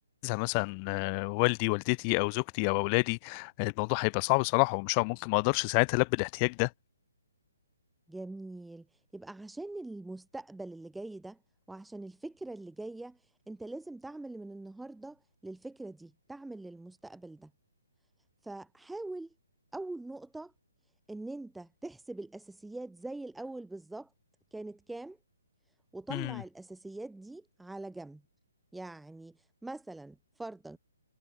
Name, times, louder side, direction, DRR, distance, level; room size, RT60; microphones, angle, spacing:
voice 1, 0.2-6.7 26.1-26.4, left 38 dB, 30° left, 3.0 m, -28 dB
voice 2, 8.1-8.9 9.1-11.4 11.7-13.2 13.5-17.5 18.4-19.3 19.7-20.5 21.1-24.1 24.5-25.2 25.9-28.2 28.7-30.8, right 2 dB, 5° right, 7.2 m, -43 dB
figure-of-eight pair, 135°, 0 cm